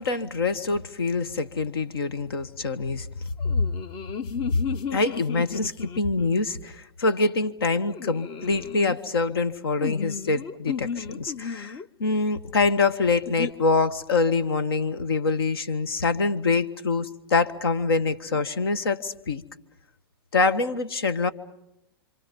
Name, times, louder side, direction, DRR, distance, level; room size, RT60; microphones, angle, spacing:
voice 1, 0.0-3.1 4.9-19.4 20.3-21.3, left 3 dB, 70° left, 13 dB, 1.5 m, -25 dB
sound 1, 3.4-6.4 7.9-9.0 9.8-11.9 13.3-13.5, left 7 dB, 30° left, 0.9 m, -34 dB
28.0 x 26.5 x 5.4 m, 0.85 s
hypercardioid pair, 115°, 13 cm